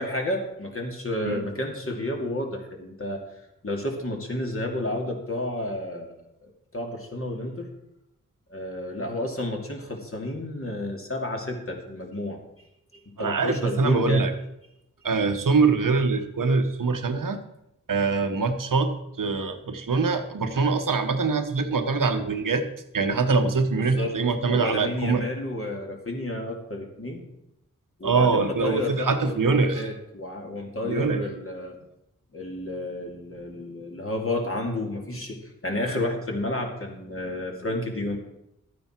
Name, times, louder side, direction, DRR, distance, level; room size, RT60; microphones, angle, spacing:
voice 1, 0.0-3.2 3.6-7.7 8.5-12.4 13.1-14.2 20.5-20.7 23.7-24.1 24.5-27.2 28.0-31.8 32.3-38.2, left 1 dB, 45° left, 1 dB, 2.6 m, -31 dB
voice 2, 13.2-14.3 15.0-17.4 17.9-18.9 19.2-22.6 22.9-25.3 28.0-29.8 30.8-31.2, right 4 dB, 80° right, 7 dB, 1.2 m, -23 dB
12.5 x 9.3 x 4.5 m, 0.84 s
wide cardioid pair, 65°, 32 cm